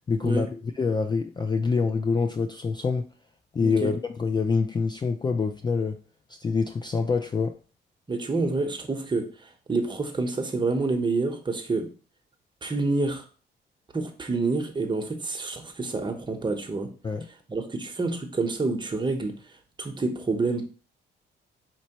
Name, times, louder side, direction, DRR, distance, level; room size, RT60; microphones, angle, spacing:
voice 1, 0.1-3.1 3.5-6.0 6.3-7.6 17.0-17.3, left 4 dB, 20° left, 0.3 m, -26 dB
voice 2, 3.6-3.9 8.1-11.9 12.6-13.3 13.9-16.9 17.5-19.3 19.8-20.7, right 3 dB, 25° right, 0.9 m, -28 dB
5.3 x 3.0 x 3.0 m
cardioid pair, 90°, 20 cm